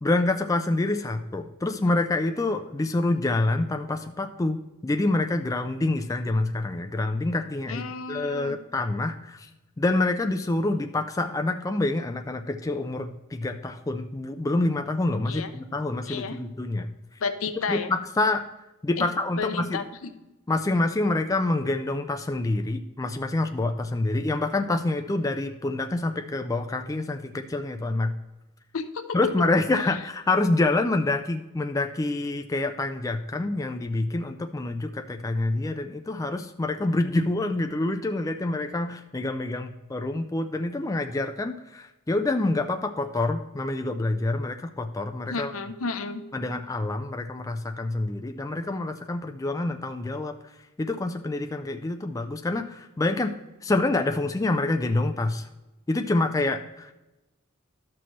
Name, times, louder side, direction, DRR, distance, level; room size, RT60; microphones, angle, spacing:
voice 1, 0.0-9.5 9.8-16.9 17.7-18.5 18.8-19.8 20.5-28.1 29.1-45.5 46.3-50.3 50.8-53.4 53.6-55.5 55.9-56.9, left 2 dB, 15° left, 6 dB, 0.3 m, -27 dB
voice 2, 7.7-8.6 15.3-15.5 16.1-16.4 17.2-17.9 19.0-19.1 19.4-19.8 28.7-29.2 45.3-46.2, left 5 dB, 75° left, 10 dB, 0.7 m, -31 dB
12.5 x 6.0 x 3.1 m, 1.0 s
head